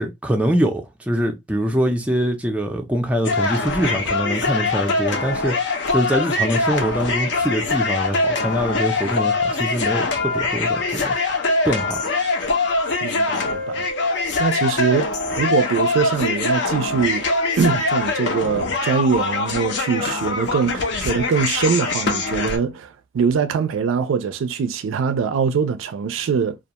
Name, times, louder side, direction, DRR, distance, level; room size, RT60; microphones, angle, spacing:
voice 1, 0.0-11.2 11.7-12.0, equal, 5° right, 0.4 m, -23 dB
sound 1, 3.2-22.6, left 3 dB, 60° left, 0.6 m, -23 dB
voice 2, 13.0-13.9 14.4-17.3 17.6-26.6, right 6 dB, 80° right, 0.3 m, -22 dB
2.3 x 2.2 x 2.8 m
head